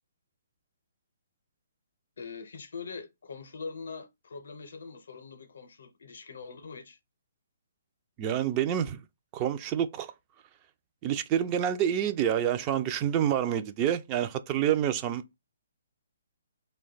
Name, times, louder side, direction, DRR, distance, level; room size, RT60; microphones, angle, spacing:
voice 1, 2.2-7.0, left 5 dB, 70° left, 0.6 m, -43 dB
voice 2, 8.2-9.0 9.3-10.1 11.0-15.3, right 10 dB, 30° right, 0.3 m, -28 dB
2.7 x 2.2 x 3.8 m
hypercardioid pair, 140°, 0 cm